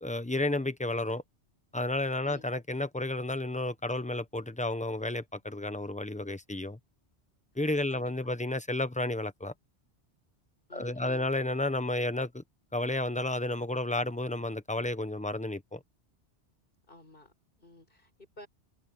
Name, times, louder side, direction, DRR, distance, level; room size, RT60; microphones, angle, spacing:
voice 1, 0.0-1.2 1.7-6.8 7.6-9.5 10.7-12.4 12.7-15.8, left 2 dB, 5° left, 0.8 m, -32 dB
voice 2, 10.7-11.3 16.8-18.5, left 2 dB, 50° left, 6.5 m, -52 dB
omnidirectional pair, 1.2 m